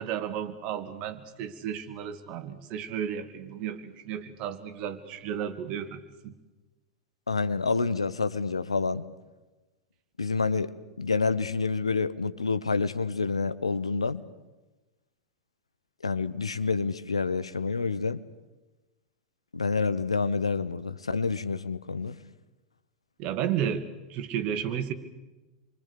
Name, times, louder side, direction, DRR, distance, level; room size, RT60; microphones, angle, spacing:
voice 1, 0.0-6.3 23.2-24.9, right 9 dB, 40° right, 2.4 m, -33 dB
voice 2, 7.3-9.0 10.2-14.2 16.0-18.2 19.5-22.2, left 4 dB, 80° left, 1.1 m, -28 dB
28.0 x 24.5 x 6.7 m
figure-of-eight pair, 90°, 3 cm